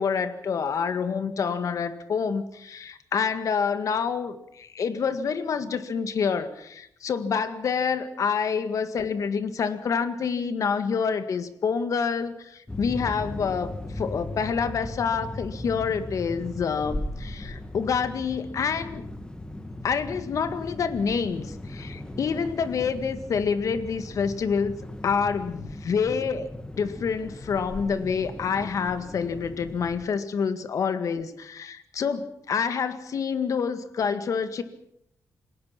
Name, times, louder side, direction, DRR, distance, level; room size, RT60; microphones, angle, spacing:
voice 1, 0.0-19.0 19.8-24.8 25.0-34.6, left 6 dB, 65° left, 10 dB, 1.8 m, -27 dB
sound 1, 12.7-30.0, left 1 dB, 15° left, 2.1 m, -38 dB
27.5 x 19.5 x 6.0 m, 0.74 s
cardioid pair, 115°, 6 cm